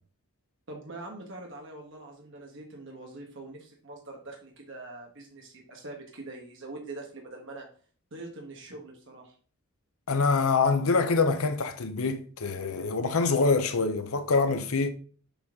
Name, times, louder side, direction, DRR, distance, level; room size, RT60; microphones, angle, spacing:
voice 1, 0.7-7.7 8.1-9.3, right 2 dB, 55° right, 1.3 m, -43 dB
voice 2, 10.1-14.9, left 4 dB, 75° left, 0.7 m, -25 dB
7.1 x 4.0 x 3.6 m
head